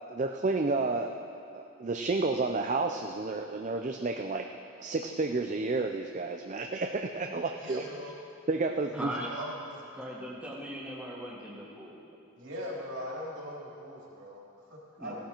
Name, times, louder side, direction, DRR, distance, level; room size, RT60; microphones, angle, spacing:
voice 1, 0.1-1.1 1.5-4.5 4.8-7.8 8.5-9.1, right 3 dB, 35° right, 5 dB, 0.4 m, -31 dB
voice 2, 7.6-8.1 8.9-9.8 12.3-15.1, equal, 60° right, -5 dB, 3.5 m, -41 dB
voice 3, 8.9-9.3 9.9-12.1 15.0-15.1, equal, 5° right, -6 dB, 1.7 m, -39 dB
16.5 x 12.5 x 4.4 m, 2.6 s
head